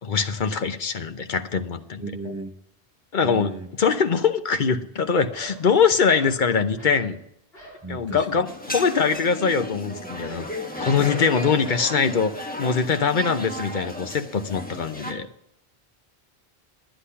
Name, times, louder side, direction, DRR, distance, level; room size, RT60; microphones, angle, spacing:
voice 1, 0.0-2.0 3.1-7.2 7.9-10.5 10.8-12.3 12.6-15.3, left 5 dB, 50° left, 9 dB, 0.9 m, -23 dB
voice 2, 2.0-2.6 3.2-3.7 7.8-8.5, right 3 dB, 15° right, 5 dB, 1.0 m, -35 dB
sound 1, 3.6-3.7 5.3-5.7 6.0-6.4 6.8-7.1 7.5-7.9 9.1-12.1, equal, 70° left, 4.6 m, -44 dB
sound 2, 8.5-15.1, equal, 10° left, 1.3 m, -34 dB
10.0 x 10.0 x 5.7 m, 0.74 s
omnidirectional pair, 1.1 m